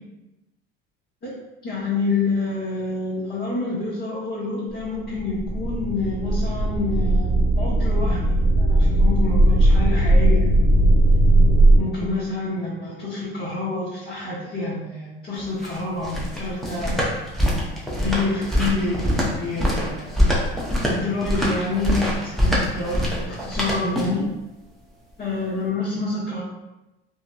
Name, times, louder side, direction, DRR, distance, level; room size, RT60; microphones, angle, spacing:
voice 1, 1.6-10.5 11.8-17.1 18.0-20.1 20.9-24.3 25.2-26.4, left 3 dB, 35° left, -9 dB, 0.9 m, -27 dB
sound 1, 4.8-4.9 5.2-11.8, right 1 dB, 65° left, 0.7 m, -17 dB
sound 2, 15.4-24.3, equal, ahead, 0.6 m, -24 dB
2.6 x 2.2 x 2.3 m, 0.97 s
supercardioid pair, 85°, 29 cm